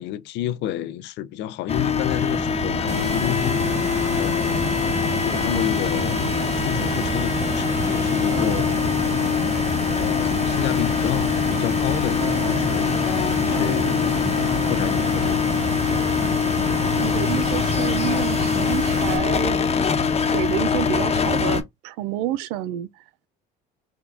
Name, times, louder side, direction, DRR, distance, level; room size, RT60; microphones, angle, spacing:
voice 1, 0.0-3.7 4.2-4.9 5.2-6.3 6.6-8.8 10.0-12.9 13.5-14.3 14.7-15.4, left 12 dB, 70° left, 0.5 m, -30 dB
sound 1, 1.7-21.6, left 6 dB, 35° left, 0.9 m, -23 dB
sound 2, 2.9-19.2, right 5 dB, 35° right, 0.7 m, -31 dB
Keyboard (musical), 8.3-10.6 12.2-16.5, right 4 dB, 65° right, 1.0 m, -36 dB
voice 2, 16.9-19.6 20.3-22.9, right 13 dB, 90° right, 0.5 m, -29 dB
3.5 x 2.3 x 3.5 m
supercardioid pair, 75°, 19 cm